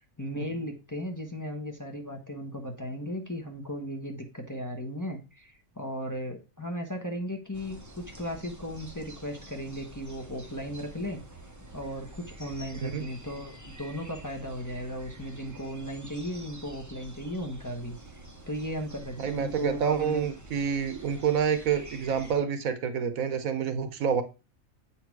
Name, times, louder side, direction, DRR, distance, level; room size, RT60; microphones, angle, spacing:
voice 1, 0.2-11.2 11.7-18.0 18.5-20.3, equal, 15° left, 1.1 m, -36 dB
sound 1, 7.5-22.3, right 1 dB, 15° right, 0.7 m, -48 dB
voice 2, 12.7-13.1 19.2-24.2, right 7 dB, 80° right, 1.3 m, -28 dB
7.9 x 4.3 x 4.6 m
omnidirectional pair, 1.4 m